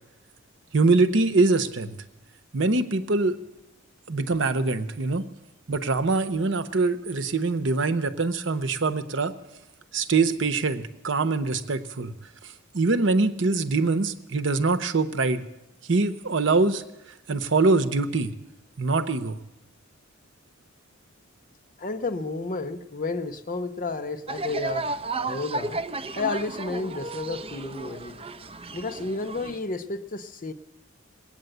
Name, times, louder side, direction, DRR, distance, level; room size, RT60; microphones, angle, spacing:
voice 1, 0.7-2.0 2.5-3.4 4.1-5.2 5.7-9.3 9.9-12.1 12.7-15.5 15.9-16.8 17.3-18.3 18.8-19.4, right 3 dB, 65° right, 10 dB, 0.9 m, -23 dB
voice 2, 21.8-24.9 25.2-25.8 26.2-28.2 28.7-30.5, left 3 dB, 40° left, 11 dB, 0.8 m, -31 dB
sound 1, 24.3-29.6, right 3 dB, 30° right, 0.5 m, -33 dB
20.0 x 9.0 x 7.9 m, 0.93 s
head